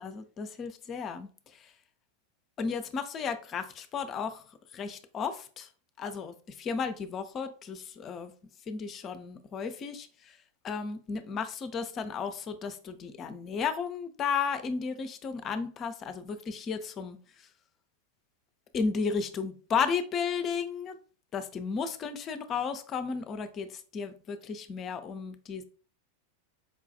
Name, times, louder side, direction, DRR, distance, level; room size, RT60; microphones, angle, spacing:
voice 1, 0.0-1.7 2.6-5.7 6.0-8.3 8.7-10.4 10.6-17.5 18.7-21.0 21.3-25.6, left 5 dB, 30° left, 0.5 m, -34 dB
4.7 x 2.3 x 2.6 m
figure-of-eight pair, 90°, 0 cm